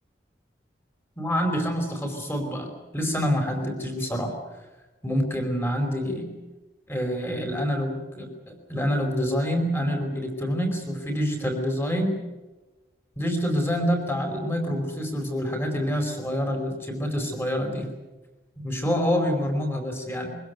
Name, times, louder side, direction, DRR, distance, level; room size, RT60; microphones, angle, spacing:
voice 1, 1.2-4.3 5.0-6.3 6.9-12.1 13.2-17.9 18.6-20.4, equal, 15° left, 4 dB, 4.7 m, -27 dB
24.5 x 17.0 x 9.3 m, 1.1 s
head